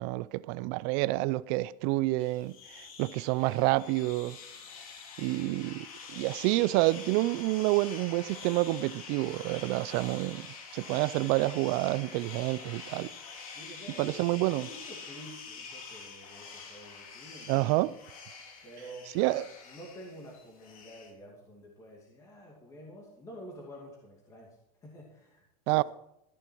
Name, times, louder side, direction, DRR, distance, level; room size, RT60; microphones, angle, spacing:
voice 1, 0.0-4.4 5.2-5.9 6.1-10.5 10.7-13.1 14.0-14.7 17.5-17.9 19.1-19.5 25.7-25.8, right 19 dB, 35° right, 0.4 m, -28 dB
sound 1, 2.2-21.1, left 5 dB, 65° left, 3.3 m, -46 dB
voice 2, 13.5-17.7 18.6-25.4 25.7-25.8, equal, 15° left, 2.4 m, -49 dB
14.0 x 11.0 x 4.5 m
supercardioid pair, 170°, 19 cm